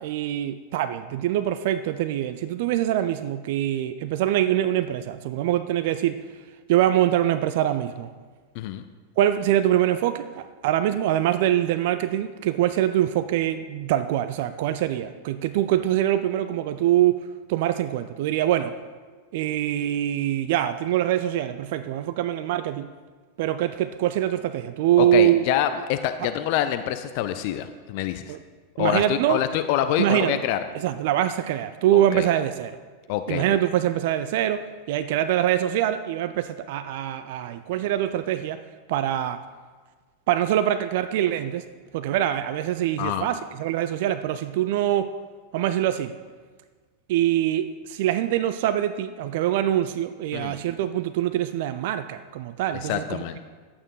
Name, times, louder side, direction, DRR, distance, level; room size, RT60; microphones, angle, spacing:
voice 1, 0.0-6.2 6.7-8.1 9.2-17.2 17.5-18.8 19.3-22.9 23.4-25.4 28.3-28.4 28.8-29.4 30.0-30.4 30.7-32.8 33.3-38.6 38.9-39.4 40.3-41.6 41.9-45.2 45.5-46.1 47.1-53.4, right 12 dB, 50° right, 11 dB, 0.4 m, -24 dB
voice 2, 25.0-28.4 28.8-30.6 31.9-32.3 33.1-33.4 43.0-43.3 50.3-50.6 52.9-53.4, left 11 dB, 45° left, 10 dB, 0.5 m, -26 dB
11.0 x 8.6 x 4.9 m, 1.5 s
figure-of-eight pair, 90°, 0 cm